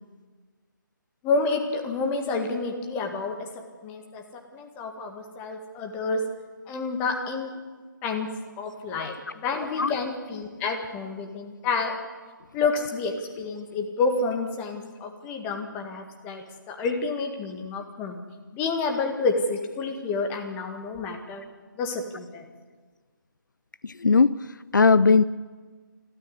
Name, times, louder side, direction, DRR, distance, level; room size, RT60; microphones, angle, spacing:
voice 1, 1.2-3.4 3.8-6.2 6.7-7.6 8.0-8.3 8.6-12.0 12.5-18.2 18.5-21.4 21.8-22.4, left 4 dB, 15° left, 4 dB, 2.0 m, -29 dB
voice 2, 23.8-25.2, left 4 dB, 65° left, 17 dB, 0.5 m, -19 dB
29.0 x 13.5 x 8.2 m, 1.4 s
figure-of-eight pair, 145°, 11 cm